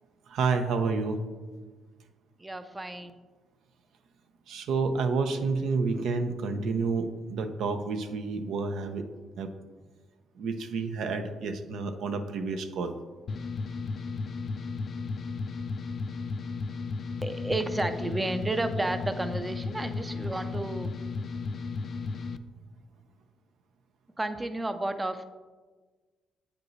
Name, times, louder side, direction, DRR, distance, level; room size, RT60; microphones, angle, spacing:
voice 1, 0.3-1.2 4.5-9.1 9.4-9.5 10.4-12.9, right 4 dB, 80° right, 7 dB, 0.6 m, -29 dB
voice 2, 2.4-3.1 17.2-20.9 24.2-25.2, right 2 dB, 15° right, 9 dB, 0.5 m, -32 dB
sound 1, 13.3-22.4, left 4 dB, 50° left, 0.3 m, -34 dB
8.3 x 5.2 x 3.1 m, 1.3 s
cardioid pair, 90°, 0 cm